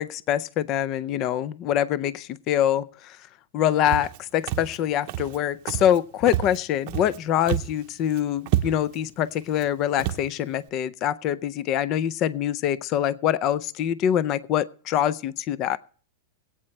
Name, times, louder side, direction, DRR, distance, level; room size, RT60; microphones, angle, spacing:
voice 1, 0.0-3.2 3.5-15.8, left 10 dB, 30° left, 18 dB, 0.4 m, -25 dB
Walk footsteps, 3.9-4.2 4.5-4.8 5.1-5.4 5.7-6.0 6.3-7.2 7.5-7.8 8.1-8.2 8.5-9.0 9.5-9.7 10.0-10.3, right 13 dB, 40° right, 0.7 m, -28 dB
22.5 x 8.7 x 3.2 m, 0.43 s
supercardioid pair, 170°, 0 cm